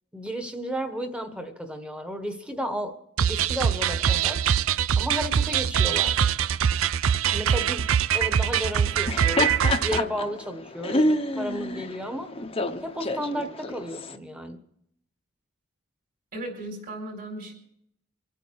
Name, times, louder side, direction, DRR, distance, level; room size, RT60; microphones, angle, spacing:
voice 1, 0.1-4.4 5.0-6.2 7.3-9.5 9.8-12.3 12.8-14.6, equal, 5° right, 7 dB, 1.4 m, -33 dB
sound 1, 3.2-10.0, right 8 dB, 85° right, 0.5 m, -23 dB
Laughter, 8.9-14.1, left 1 dB, 30° left, 0.9 m, -28 dB
voice 2, 16.3-17.5, right 1 dB, 45° right, 0 dB, 4.5 m, -36 dB
25.0 x 9.3 x 4.8 m, 0.72 s
head